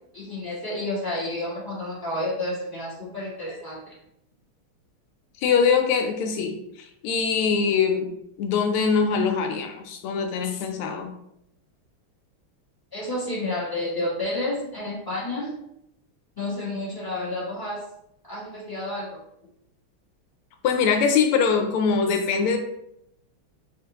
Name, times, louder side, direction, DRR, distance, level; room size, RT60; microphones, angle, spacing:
voice 1, 0.1-3.9 12.9-15.6 16.4-17.8 18.2-19.2, left 1 dB, 15° left, -7 dB, 0.9 m, -30 dB
voice 2, 5.4-8.1 8.4-11.1 20.6-22.6, left 6 dB, 85° left, 4 dB, 1.5 m, -23 dB
4.8 x 2.5 x 2.8 m, 0.78 s
omnidirectional pair, 2.4 m